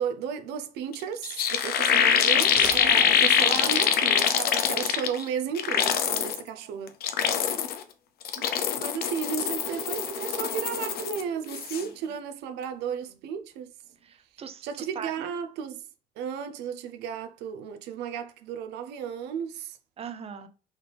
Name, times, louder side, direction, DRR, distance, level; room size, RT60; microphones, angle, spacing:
voice 1, 0.0-7.0 8.4-8.5 8.8-13.7 14.6-15.8 16.2-19.8, right 7 dB, 85° right, 0.5 m, -34 dB
sound 1, 0.9-1.0 1.2-5.2 5.6-6.4 6.9-7.8 8.2-11.2 11.5-11.8, left 8 dB, 65° left, 0.7 m, -24 dB
sound 2, 2.3-3.4, right 1 dB, 10° right, 0.9 m, -38 dB
voice 2, 2.7-3.2 6.5-6.9 11.8-11.9 14.0-15.1 20.0-20.5, right 7 dB, 35° right, 0.7 m, -41 dB
sound 3, 9.0-11.7 12.1-12.2 12.6-12.8 13.9-14.0, right 6 dB, 65° right, 1.1 m, -41 dB
4.0 x 3.2 x 3.3 m
cardioid pair, 110°, 17 cm